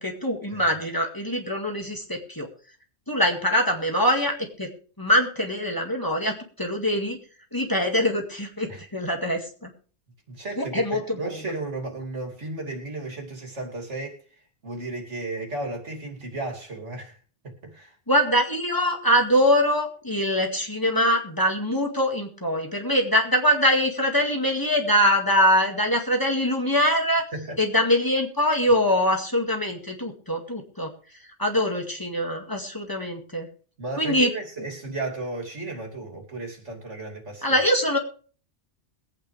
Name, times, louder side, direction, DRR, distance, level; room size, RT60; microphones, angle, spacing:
voice 1, 0.0-2.5 3.1-4.7 5.0-7.2 7.5-9.7 10.6-11.4 18.1-27.2 27.6-30.9 31.4-33.5 34.0-34.3 37.4-38.0, equal, 20° left, 2 dB, 2.1 m, -23 dB
voice 2, 10.3-14.2 14.6-17.2 17.4-17.9 27.3-27.6 28.7-28.8 33.8-37.6, right 2 dB, 85° right, 2 dB, 3.2 m, -34 dB
22.0 x 9.0 x 3.3 m, 0.40 s
omnidirectional pair, 1.2 m